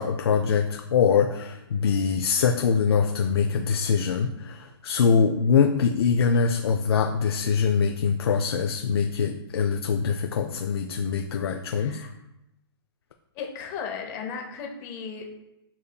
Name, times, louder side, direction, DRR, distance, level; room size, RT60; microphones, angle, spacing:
voice 1, 0.0-12.0, left 6 dB, 75° left, 4 dB, 0.4 m, -23 dB
voice 2, 11.6-12.1 13.3-15.2, left 6 dB, 30° left, 2 dB, 0.7 m, -36 dB
7.0 x 2.6 x 2.2 m, 0.90 s
hypercardioid pair, 150°, 13 cm